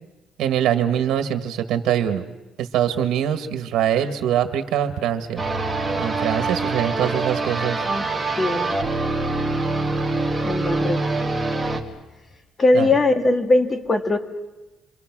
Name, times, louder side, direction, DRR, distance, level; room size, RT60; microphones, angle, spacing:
voice 1, 0.4-2.2 2.6-5.4 6.0-7.8 12.7-13.0, right 10 dB, 75° right, 7 dB, 1.7 m, -23 dB
sound 1, 5.4-11.8, right 3 dB, 5° right, 2.2 m, -24 dB
voice 2, 7.8-8.7 10.4-11.0 12.6-14.2, left 2 dB, 20° left, 6 dB, 1.8 m, -20 dB
28.5 x 26.0 x 6.1 m, 1.1 s
cardioid pair, 160°, 0 cm